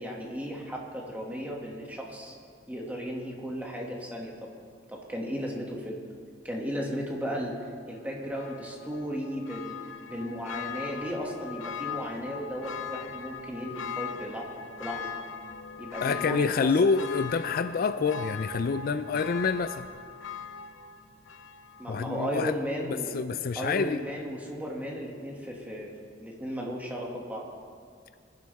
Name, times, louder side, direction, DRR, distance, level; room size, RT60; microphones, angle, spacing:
voice 1, 0.0-2.4 2.7-4.5 4.9-6.0 6.4-7.6 7.9-9.8 10.0-14.5 14.8-15.1 15.8-16.7 21.8-23.1 23.6-25.9 26.2-27.4, equal, 10° right, -2 dB, 2.1 m, -35 dB
Church bell, 8.3-22.0 22.4-22.5, left 6 dB, 90° left, 0.8 m, -40 dB
voice 2, 16.0-19.9 21.9-22.5 22.9-24.0, left 5 dB, 50° left, 11 dB, 0.4 m, -27 dB
22.0 x 11.5 x 3.5 m, 2.2 s
head